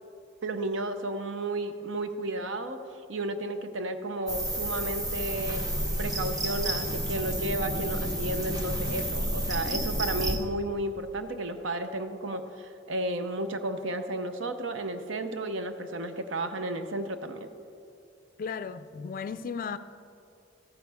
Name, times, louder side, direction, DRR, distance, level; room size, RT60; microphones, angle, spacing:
voice 1, 0.4-2.8 3.1-17.5, right 1 dB, 70° right, 0.7 m, -33 dB
sound 1, 4.3-10.4, right 1 dB, 20° right, 1.2 m, -30 dB
voice 2, 18.4-19.8, left 6 dB, 45° left, 0.4 m, -35 dB
14.5 x 9.6 x 3.4 m
head